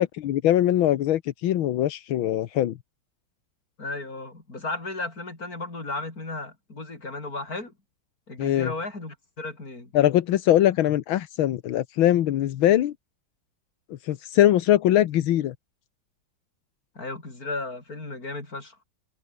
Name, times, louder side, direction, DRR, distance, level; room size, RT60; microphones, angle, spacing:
voice 1, 0.0-2.8 8.4-8.7 9.9-12.9 14.0-15.5, left 12 dB, 80° left, 1.8 m, -22 dB
voice 2, 3.8-7.7 8.3-9.9 17.0-18.8, left 2 dB, 45° left, 5.9 m, -34 dB
omnidirectional pair, 2.2 m